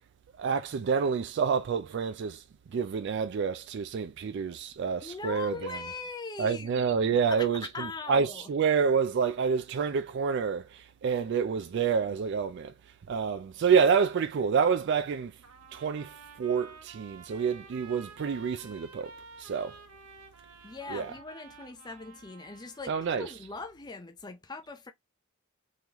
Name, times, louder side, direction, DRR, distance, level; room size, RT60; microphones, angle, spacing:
voice 1, 0.4-5.5 6.4-15.4 15.7-19.1 19.4-19.8 20.9-21.1 22.9-23.3, right 6 dB, 55° right, 0.3 m, -28 dB
voice 2, 5.0-8.5 20.6-24.9, left 4 dB, 20° left, 0.5 m, -41 dB
Trumpet, 15.4-22.9, right 4 dB, 85° right, 0.9 m, -51 dB
3.7 x 3.0 x 2.9 m
head